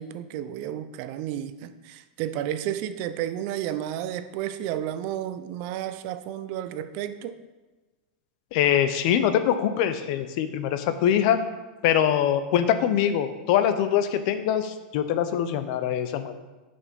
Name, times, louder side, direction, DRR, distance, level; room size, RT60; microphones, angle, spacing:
voice 1, 0.0-7.4, right 11 dB, 45° right, 11 dB, 0.5 m, -32 dB
voice 2, 8.5-11.4 11.8-16.3, left 9 dB, 50° left, 10 dB, 0.6 m, -23 dB
6.8 x 5.2 x 5.3 m, 1.2 s
supercardioid pair, 155°, 5 cm